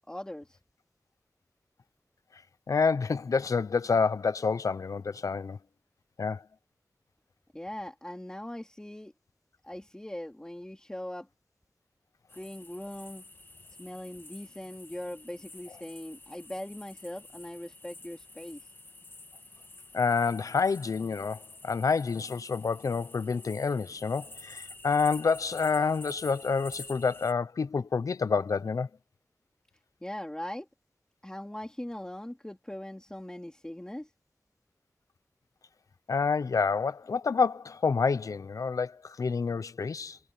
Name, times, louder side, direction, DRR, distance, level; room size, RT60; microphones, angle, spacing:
voice 1, 0.1-0.6 7.5-9.1 9.6-11.3 12.3-13.2 13.8-18.7 30.0-30.7 31.2-34.1, left 1 dB, 15° left, 3.0 m, -40 dB
voice 2, 2.7-5.6 6.2-6.4 19.9-28.9 36.1-40.2, left 5 dB, 85° left, 0.8 m, -28 dB
sound 1, 12.3-27.3, left 2 dB, 40° left, 1.6 m, -49 dB
wide cardioid pair, 85°, 6 cm